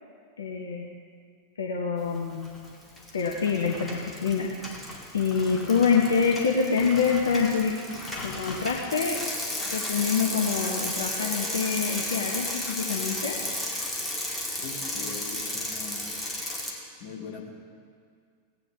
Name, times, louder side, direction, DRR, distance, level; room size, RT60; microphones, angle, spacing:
voice 1, 0.4-0.9 1.6-2.4 3.1-4.5 5.1-7.7 8.2-9.2 9.7-13.4, left 5 dB, 70° left, 0 dB, 0.9 m, -26 dB
Bicycle, 2.3-2.7 3.0-16.7, left 1 dB, 5° left, 1.9 m, -33 dB
voice 2, 14.6-16.1 17.0-17.4, left 4 dB, 45° left, -1 dB, 1.9 m, -40 dB
17.5 x 9.1 x 3.6 m, 2.1 s
figure-of-eight pair, 90°, 0 cm